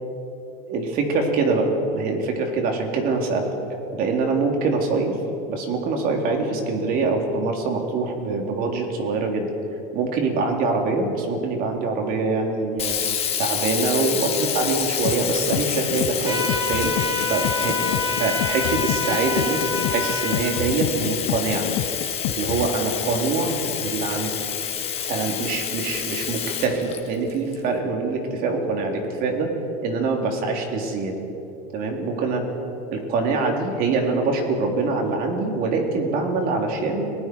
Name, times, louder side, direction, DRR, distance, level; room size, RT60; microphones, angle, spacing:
voice 1, 0.7-3.5 3.9-5.2 5.5-9.5 9.9-13.0 13.4-16.9 17.3-19.6 19.9-21.7 22.3-24.4 25.1-29.5 29.8-31.2 31.7-32.5 32.9-37.1, right 3 dB, 50° right, 2 dB, 3.7 m, -24 dB
Sink (filling or washing), 12.8-27.5, left 8 dB, 30° left, 2.1 m, -28 dB
sound 1, 15.0-22.7, left 16 dB, 65° left, 0.9 m, -28 dB
sound 2, 16.2-20.4, left 3 dB, 25° right, 5.5 m, -27 dB
30.0 x 20.0 x 4.8 m, 2.8 s
cardioid pair, 145°, 19 cm